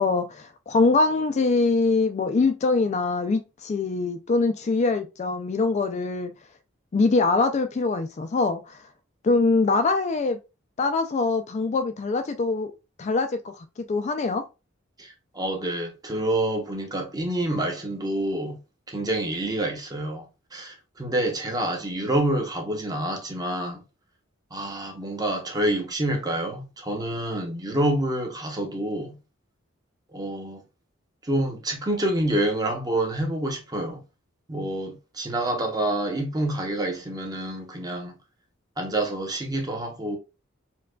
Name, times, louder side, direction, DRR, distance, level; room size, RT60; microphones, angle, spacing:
voice 1, 0.0-6.3 6.9-8.8 9.2-10.4 10.8-12.7 13.0-13.5 13.9-14.4, left 3 dB, 35° left, 0.3 m, -23 dB
voice 2, 15.0-18.6 18.9-23.8 24.5-29.2 30.1-30.6 31.2-34.0 34.5-38.1 38.8-40.2, right 1 dB, 20° right, 0.8 m, -27 dB
4.5 x 2.3 x 2.2 m
head